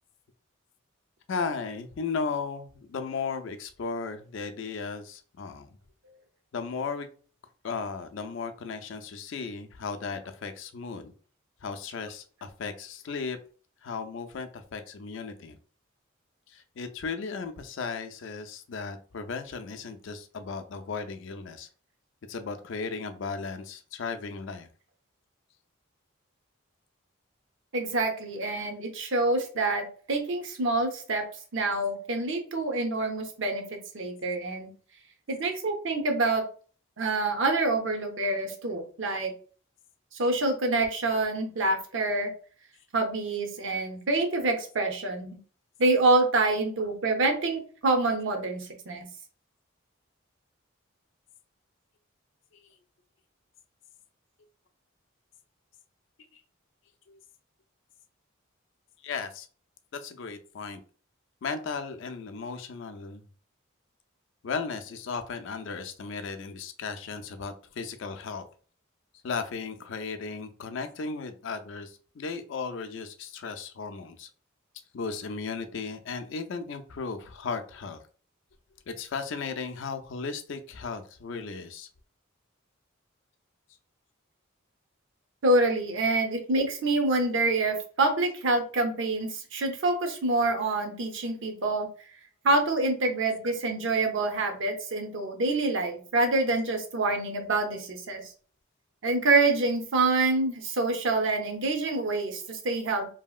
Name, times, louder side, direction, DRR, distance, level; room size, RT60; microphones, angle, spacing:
voice 1, 1.3-5.8 6.5-7.1 7.6-11.1 11.6-13.4 13.8-15.6 16.5-21.7 22.3-24.7 56.3-56.4 57.1-57.2 59.0-59.5 59.9-60.8 61.4-63.3 64.4-68.5 69.2-74.3 74.9-78.0 78.9-81.9, left 5 dB, 60° left, 8 dB, 0.4 m, -35 dB
voice 2, 27.7-31.3 31.5-34.7 35.3-36.5 37.0-39.3 40.2-42.3 42.9-45.4 45.8-49.0 85.4-91.9 92.4-98.2 99.0-103.1, right 2 dB, 65° right, 5 dB, 0.6 m, -26 dB
2.9 x 2.7 x 2.3 m, 0.41 s
head